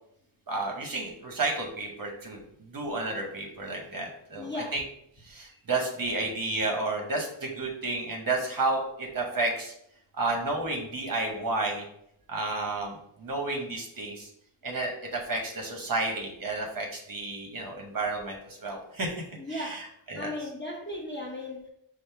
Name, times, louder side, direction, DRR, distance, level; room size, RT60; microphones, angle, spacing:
voice 1, 0.5-4.8 5.2-9.7 10.2-11.8 12.3-14.3 14.6-19.2 19.5-19.8 20.1-20.3, right 2 dB, 45° right, 1 dB, 1.0 m, -31 dB
voice 2, 4.4-4.8 19.4-21.6, left 1 dB, 25° left, -2 dB, 0.7 m, -36 dB
5.0 x 2.0 x 4.4 m, 0.72 s
wide cardioid pair, 155°, 49 cm